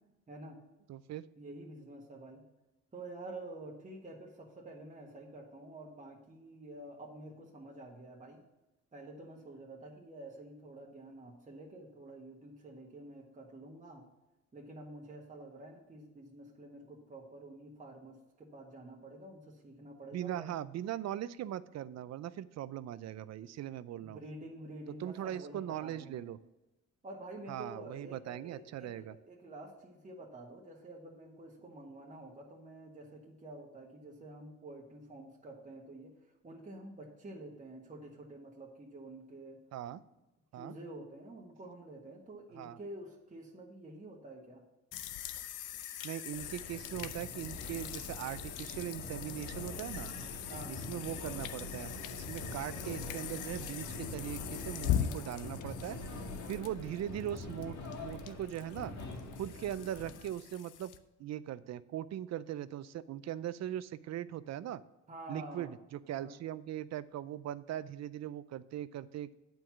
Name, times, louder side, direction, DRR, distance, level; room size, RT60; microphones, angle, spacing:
voice 1, 0.3-0.6 1.4-2.4 2.9-8.4 8.9-14.1 14.5-20.5 24.0-26.3 27.0-36.1 36.4-39.6 40.5-44.6 50.5-50.8 65.1-65.7 66.2-66.4, right 2 dB, 25° right, -2 dB, 1.5 m, -49 dB
voice 2, 0.9-1.2 20.1-24.2 25.0-26.4 27.5-29.1 39.7-40.0 40.5-40.7 42.6-42.8 46.0-50.1 50.7-56.2 56.5-58.9 59.3-60.9 61.2-64.8 65.3-69.3, right 11 dB, 60° right, 16 dB, 0.5 m, -40 dB
sound 1, 44.9-61.0, left 10 dB, 90° left, 0.6 m, -41 dB
sound 2, 46.3-60.3, left 2 dB, 65° left, 1.9 m, -44 dB
8.7 x 4.6 x 7.1 m, 1.0 s
cardioid pair, 90°, 30 cm